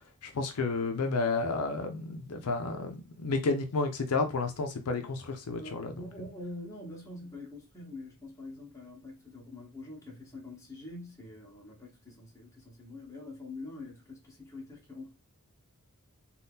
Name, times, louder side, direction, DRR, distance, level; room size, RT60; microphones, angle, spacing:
voice 1, 0.2-5.9, left 3 dB, 75° left, 0.5 m, -31 dB
voice 2, 5.6-15.2, left 2 dB, 15° left, 1.0 m, -45 dB
2.7 x 2.3 x 3.5 m
head